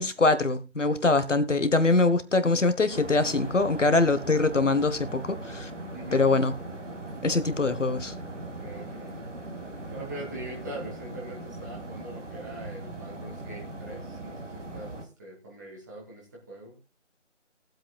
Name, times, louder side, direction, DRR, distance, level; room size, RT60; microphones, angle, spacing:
voice 1, 0.0-5.7 6.1-6.5 7.2-8.1, left 3 dB, 70° left, 1.3 m, -23 dB
sound 1, 2.9-15.0, right 2 dB, 70° right, 3.0 m, -39 dB
voice 2, 5.9-6.3 8.6-9.2 9.9-16.8, right 1 dB, 15° right, 2.1 m, -42 dB
21.0 x 7.9 x 2.3 m
figure-of-eight pair, 165°, 38 cm